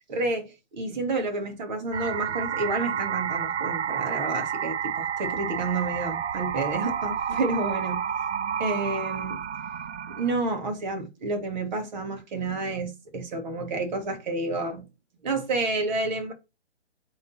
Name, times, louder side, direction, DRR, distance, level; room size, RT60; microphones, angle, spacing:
voice 1, 0.0-8.0 8.6-9.4 10.2-14.8 15.2-16.3, right 3 dB, 40° right, 2.3 m, -30 dB
sound 1, 1.9-10.3, right 8 dB, 80° right, 0.6 m, -30 dB
8.6 x 4.1 x 4.2 m
figure-of-eight pair, 145°, 34 cm